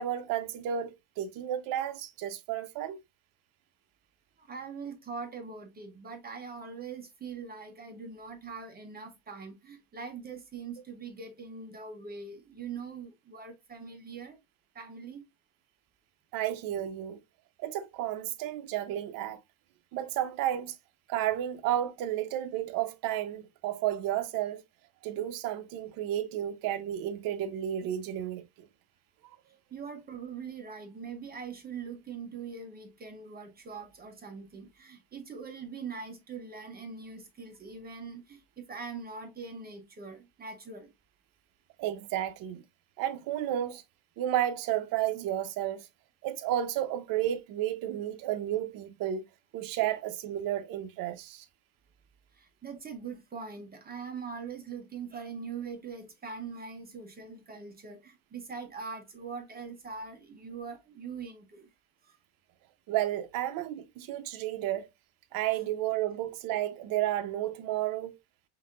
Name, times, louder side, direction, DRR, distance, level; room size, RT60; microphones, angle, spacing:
voice 1, 0.0-3.0 16.3-17.2 17.6-19.4 19.9-20.7 21.1-24.6 25.0-28.4 41.8-42.6 43.0-43.8 44.2-45.9 46.2-49.2 49.5-51.4 62.9-64.9 65.3-68.2, right 12 dB, 50° right, 0.8 m, -32 dB
voice 2, 4.4-14.4 14.7-15.2 29.7-40.9 52.3-61.7 62.0-62.2, right 5 dB, 20° right, 0.9 m, -42 dB
5.7 x 2.8 x 2.5 m
cardioid pair, 135°, 43 cm